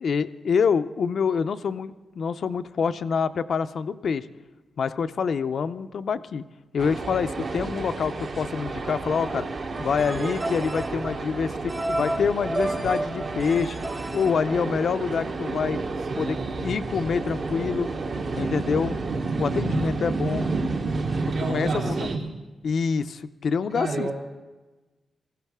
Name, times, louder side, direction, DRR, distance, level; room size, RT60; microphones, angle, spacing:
voice 1, 0.0-4.3 4.8-6.4 6.7-9.5 9.8-13.8 14.1-15.8 16.2-17.9 18.4-19.0 19.4-20.5 21.5-22.1 22.6-24.1, left 6 dB, 60° left, 11 dB, 0.5 m, -26 dB
sound 1, 6.8-22.2, right 3 dB, 50° right, 1.0 m, -30 dB
sound 2, 9.7-15.1, right 1 dB, 20° right, 0.5 m, -32 dB
voice 2, 16.1-16.7 19.5-20.0 21.2-22.3 23.7-24.1, right 3 dB, 85° right, -3 dB, 3.5 m, -31 dB
19.0 x 15.5 x 3.6 m, 1.2 s
wide cardioid pair, 140°, 0 cm